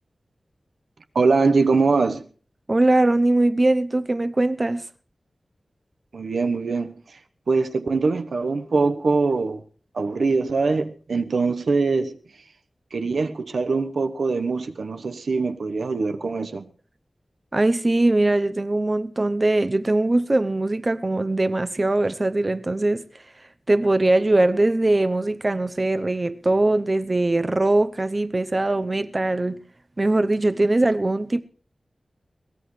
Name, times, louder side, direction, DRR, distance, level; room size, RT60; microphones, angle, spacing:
voice 1, 1.1-2.3 6.1-7.2 7.5-9.6 9.9-12.2 12.9-16.7, right 4 dB, 85° right, 1.1 m, -23 dB
voice 2, 2.7-4.8 17.5-23.1 23.7-29.6 30.0-31.4, right 2 dB, 30° right, 0.7 m, -21 dB
22.5 x 17.5 x 3.2 m
wide cardioid pair, 95°, 0 cm